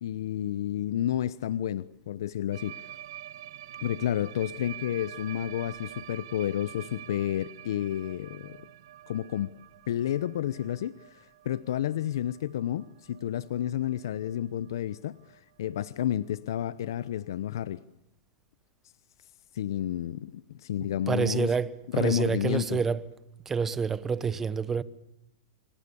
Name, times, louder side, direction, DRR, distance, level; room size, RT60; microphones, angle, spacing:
voice 1, 0.0-2.9 3.8-8.6 9.1-9.5 9.9-17.8 19.5-21.5 21.9-22.8, left 11 dB, 70° left, 0.9 m, -31 dB
sound 1, 2.5-14.4 14.7-14.9 15.2-15.4 15.7-15.8 16.1-16.2 17.3-17.4, right 12 dB, 65° right, 1.8 m, -47 dB
voice 2, 21.1-23.1 23.4-24.8, right 5 dB, 15° right, 1.0 m, -28 dB
28.0 x 24.0 x 7.1 m
hypercardioid pair, 140°, 2 cm